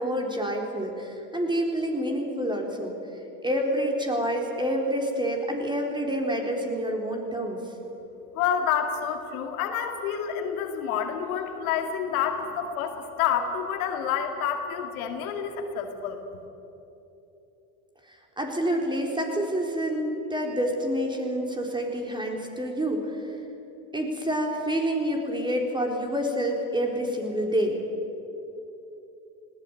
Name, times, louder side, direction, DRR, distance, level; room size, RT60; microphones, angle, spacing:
voice 1, 0.0-2.9 3.4-7.6 18.1-23.3 23.9-27.8, equal, 10° right, 2 dB, 4.2 m, -28 dB
voice 2, 8.3-16.2, left 8 dB, 75° left, 5 dB, 2.2 m, -28 dB
19.0 x 16.5 x 9.1 m, 3.0 s
hypercardioid pair, 80°, 42 cm